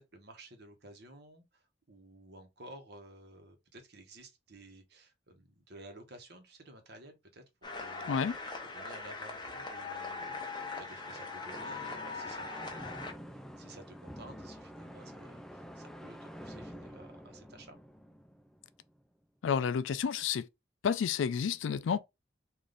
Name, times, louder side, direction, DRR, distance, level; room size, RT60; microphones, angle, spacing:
voice 1, 0.0-8.2 8.6-17.8, right 1 dB, 55° right, 1.0 m, -54 dB
sound 1, 7.6-13.1, left 3 dB, 25° left, 0.8 m, -41 dB
sound 2, 10.2-19.0, equal, 5° left, 0.3 m, -49 dB
voice 2, 19.4-20.5 20.8-22.0, left 7 dB, 75° left, 0.3 m, -30 dB
3.9 x 2.6 x 3.3 m
head